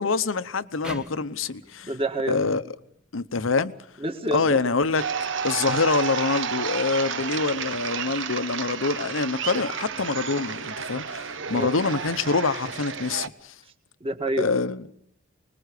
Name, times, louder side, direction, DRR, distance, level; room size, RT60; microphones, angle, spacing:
voice 1, 0.0-1.9 2.3-2.6 3.1-3.7 4.3-5.0 5.4-13.6 14.4-14.8, left 4 dB, 90° left, 0.9 m, -25 dB
sound 1, 0.8-4.1, equal, 5° right, 1.4 m, -44 dB
voice 2, 1.8-2.6 4.0-4.6 11.5-11.7 14.0-14.5, right 1 dB, 30° right, 1.9 m, -28 dB
sound 2, 5.0-13.3, right 6 dB, 70° right, 1.0 m, -31 dB
25.5 x 21.0 x 6.7 m
head